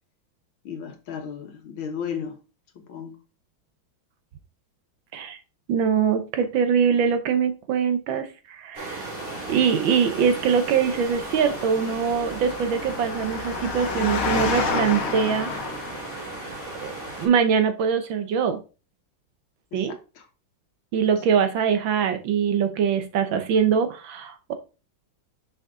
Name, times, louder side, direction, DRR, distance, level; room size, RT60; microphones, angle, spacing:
voice 1, 0.7-2.3 2.8-3.1 19.7-20.2, left 7 dB, 75° left, 2.0 m, -34 dB
voice 2, 5.7-9.1 9.5-15.5 16.8-16.9 17.2-18.6 19.7-19.9 20.9-24.5, right 7 dB, 70° right, 1.6 m, -23 dB
sound 1, 8.7-17.3, right 2 dB, 35° right, 3.0 m, -36 dB
Engine, 10.8-16.5, left 4 dB, 50° left, 1.3 m, -30 dB
6.4 x 5.1 x 3.7 m
omnidirectional pair, 2.3 m